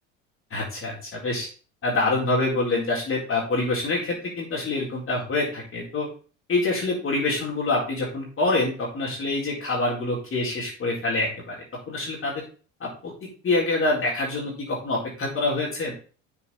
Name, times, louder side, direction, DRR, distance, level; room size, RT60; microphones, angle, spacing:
voice 1, 0.5-1.5 1.8-6.1 6.5-11.5 11.9-12.3 12.8-12.9 13.4-15.9, left 2 dB, 30° left, -4 dB, 4.2 m, -26 dB
8.3 x 7.3 x 3.7 m, 0.37 s
figure-of-eight pair, 65°, 40 cm